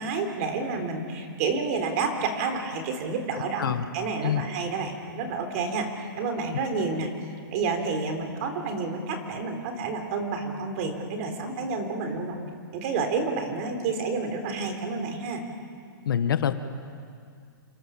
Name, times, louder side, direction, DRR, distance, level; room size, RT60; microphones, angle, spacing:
voice 1, 0.0-7.1 7.5-12.4 12.7-15.4, right 4 dB, 40° right, 6 dB, 3.9 m, -29 dB
voice 2, 3.3-3.9 4.2-4.4 16.0-16.5, left 9 dB, 70° left, 9 dB, 1.7 m, -26 dB
28.0 x 24.0 x 7.4 m, 2.3 s
hypercardioid pair, 155°, 12 cm